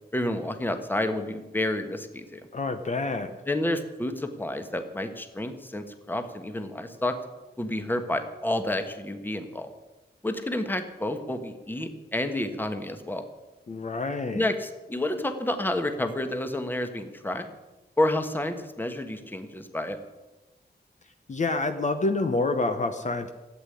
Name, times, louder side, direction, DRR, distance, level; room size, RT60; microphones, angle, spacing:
voice 1, 0.1-2.4 3.5-7.2 7.6-9.7 10.2-13.2 14.3-17.5 18.0-20.0, left 1 dB, 10° left, 7 dB, 1.4 m, -29 dB
voice 2, 2.5-3.3 13.7-14.5 21.3-23.3, left 3 dB, 45° left, 7 dB, 1.0 m, -27 dB
15.0 x 8.4 x 9.9 m, 1.1 s
wide cardioid pair, 155°, 18 cm